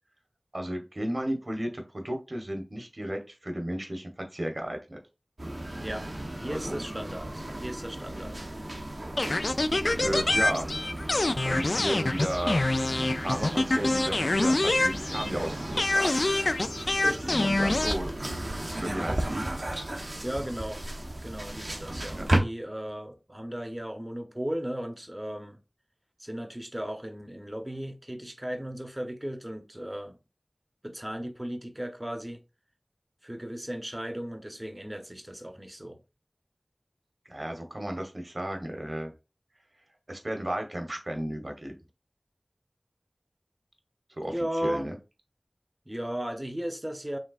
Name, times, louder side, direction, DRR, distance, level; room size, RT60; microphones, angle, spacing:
voice 1, 0.5-5.0 6.5-6.8 10.0-10.7 11.4-12.7 13.2-16.1 17.3-18.1 18.6-19.5 22.1-22.2 37.3-39.1 40.1-41.7 44.2-44.3 44.6-45.0, right 1 dB, 55° right, 1.1 m, -33 dB
sound 1, 5.4-22.4, right 1 dB, 70° right, 0.9 m, -34 dB
voice 2, 5.8-6.1 6.4-8.4 17.0-17.9 20.2-20.8 21.2-25.6 26.2-30.2 30.8-32.4 33.2-36.0 44.2-44.9 45.9-47.2, equal, 20° right, 0.7 m, -36 dB
sound 2, 9.2-15.4 15.8-18.0, left 2 dB, 75° left, 0.3 m, -26 dB
5.3 x 3.4 x 2.4 m
wide cardioid pair, 40°, 0 cm